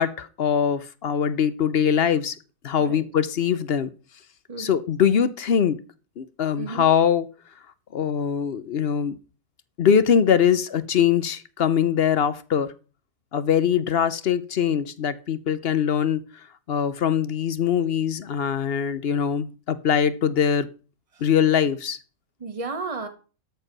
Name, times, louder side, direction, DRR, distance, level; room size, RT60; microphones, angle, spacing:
voice 1, 0.0-2.4 2.6-3.9 4.6-5.8 6.2-7.3 7.9-9.2 9.8-12.7 13.3-16.2 16.7-20.7 21.2-22.0, left 8 dB, 50° left, 14 dB, 0.8 m, -22 dB
voice 2, 22.4-23.1, right 4 dB, 25° right, 7 dB, 1.3 m, -33 dB
13.0 x 4.7 x 6.0 m, 0.35 s
omnidirectional pair, 1.5 m